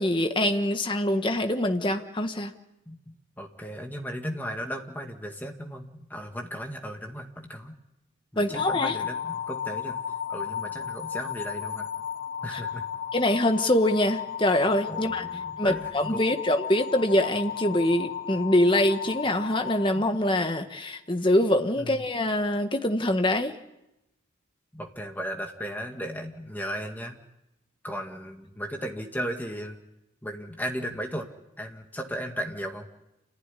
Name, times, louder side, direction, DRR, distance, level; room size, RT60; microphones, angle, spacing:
voice 1, 0.0-2.5 8.4-9.0 12.5-12.6 13.1-15.2 15.6-23.6, left 1 dB, 25° left, 6 dB, 1.3 m, -24 dB
voice 2, 2.9-7.8 8.3-10.0 10.3-11.9 12.4-12.8 14.9-16.2 19.9-20.1 21.8-22.0 24.7-27.2 27.8-29.8 30.2-31.3 31.6-32.9, equal, 10° left, 3 dB, 2.0 m, -36 dB
sound 1, 8.5-20.7, left 8 dB, 70° left, 1.6 m, -34 dB
28.0 x 15.5 x 10.0 m, 0.91 s
head